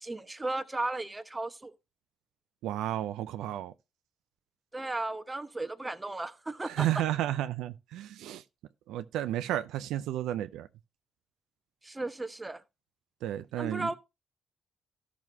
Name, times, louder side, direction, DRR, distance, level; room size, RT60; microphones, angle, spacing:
voice 1, 0.0-1.7 4.7-6.9 11.8-12.6 13.6-14.0, right 2 dB, 20° right, 1.0 m, -35 dB
voice 2, 2.6-3.7 6.7-8.4 8.9-10.7 13.2-13.9, right 13 dB, 85° right, 0.4 m, -32 dB
13.5 x 6.1 x 2.7 m
supercardioid pair, 55°, 0 cm